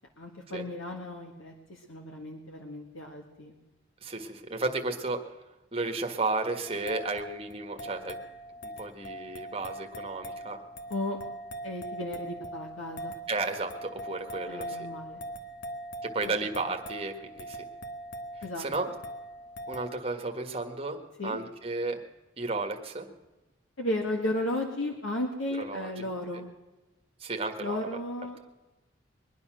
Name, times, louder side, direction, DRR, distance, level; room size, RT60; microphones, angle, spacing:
voice 1, 0.2-3.5 10.9-11.2 11.6-13.1 14.5-15.2 16.2-16.3 18.4-18.7 21.2-21.4 23.8-26.5 27.6-28.6, left 1 dB, 90° left, 2 dB, 1.8 m, -34 dB
voice 2, 4.0-5.3 5.7-8.2 8.6-10.6 13.3-14.9 16.0-17.6 18.6-18.9 19.7-21.0 21.2-22.0 22.4-23.1 25.6-26.1 27.2-27.8, right 3 dB, 30° right, 4 dB, 1.6 m, -33 dB
sound 1, 6.7-20.0, right 1 dB, 60° left, 1.3 m, -42 dB
22.5 x 9.9 x 6.2 m, 1.1 s
head